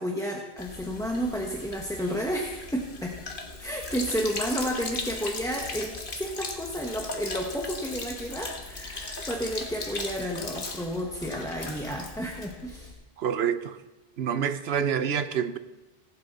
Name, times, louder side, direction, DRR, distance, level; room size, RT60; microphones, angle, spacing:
voice 1, 0.0-3.2 3.6-12.9, equal, 5° left, 1.0 m, -31 dB
Sink (filling or washing), 0.6-12.9, left 3 dB, 55° left, 1.6 m, -38 dB
voice 2, 13.2-13.8 14.2-15.6, right 8 dB, 75° right, 1.0 m, -27 dB
18.5 x 9.0 x 4.1 m
omnidirectional pair, 1.1 m